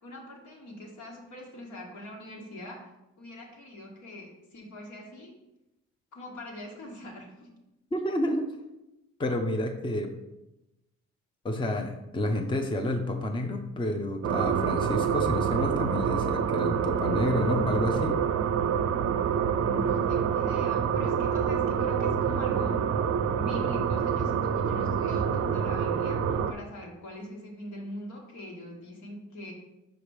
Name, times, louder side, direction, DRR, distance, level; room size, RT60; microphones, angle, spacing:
voice 1, 0.0-2.8 3.2-5.3 6.1-7.5 19.6-22.8 23.4-29.5, left 1 dB, 70° left, 0 dB, 1.8 m, -42 dB
voice 2, 7.9-8.5 9.2-10.1 11.4-18.2, left 1 dB, 15° left, 4 dB, 0.6 m, -29 dB
sound 1, 14.2-26.5, right 7 dB, 55° right, 0.5 m, -27 dB
5.2 x 5.0 x 4.8 m, 0.95 s
cardioid pair, 90°, 30 cm